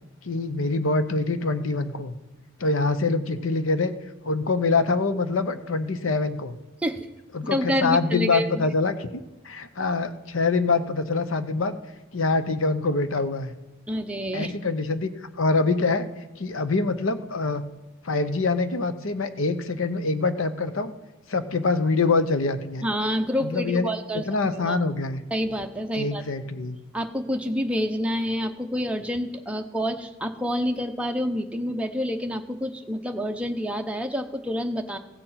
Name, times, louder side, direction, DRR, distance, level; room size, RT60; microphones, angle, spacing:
voice 1, 0.2-2.1 2.6-3.9 4.2-6.5 7.3-11.8 12.1-13.5 14.3-16.1 16.4-17.6 18.0-20.9 21.3-22.9 23.4-23.9 24.3-25.2 26.0-26.8, left 3 dB, 75° left, 11 dB, 0.8 m, -25 dB
voice 2, 7.5-8.7 13.9-14.5 22.8-24.2 24.6-24.8 25.3-26.2 26.9-35.0, equal, 5° right, 4 dB, 0.7 m, -28 dB
15.5 x 6.8 x 5.7 m, 1.1 s
head